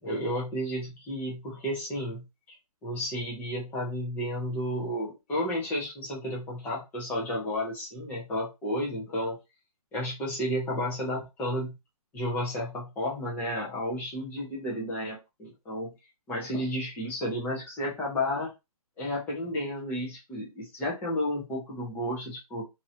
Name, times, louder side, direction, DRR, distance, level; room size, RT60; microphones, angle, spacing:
voice 1, 0.0-2.6 2.8-9.4 9.9-11.7 12.1-15.9 16.3-18.5 19.0-22.6, left 1 dB, 10° left, -5 dB, 1.0 m, -32 dB
2.9 x 2.9 x 2.8 m, 0.24 s
hypercardioid pair, 160°, 20 cm